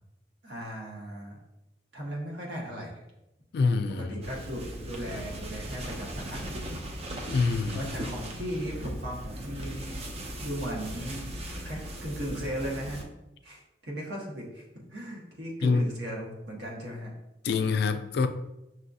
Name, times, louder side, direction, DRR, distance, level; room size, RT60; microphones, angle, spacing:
voice 1, 0.4-1.4 1.9-3.0 4.0-6.8 7.7-10.0 10.4-11.3 11.6-13.0 13.4-17.1, equal, 70° right, -2 dB, 1.1 m, -37 dB
voice 2, 3.5-4.2 7.3-7.8 15.6-15.9 17.4-18.3, left 4 dB, 60° left, 9 dB, 0.3 m, -25 dB
sound 1, 4.2-13.0, right 1 dB, 35° right, 0.5 m, -38 dB
6.0 x 2.4 x 2.6 m, 0.91 s
head